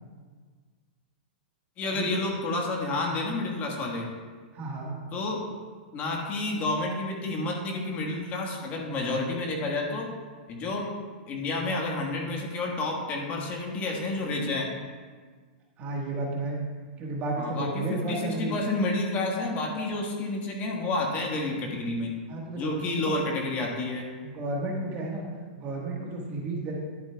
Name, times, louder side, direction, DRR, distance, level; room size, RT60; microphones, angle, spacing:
voice 1, 1.8-4.1 5.1-5.4 5.9-10.1 10.5-10.8 11.3-14.7 17.4-22.1 22.6-24.1, left 2 dB, 30° left, 0 dB, 1.5 m, -30 dB
voice 2, 4.5-5.0 15.8-16.6 17.0-18.5 22.3-22.7 23.0-23.1 24.2-25.2 25.5-26.8, right 2 dB, 30° right, -1 dB, 1.5 m, -32 dB
11.0 x 8.1 x 2.3 m, 1.5 s
hypercardioid pair, 140°, 5 cm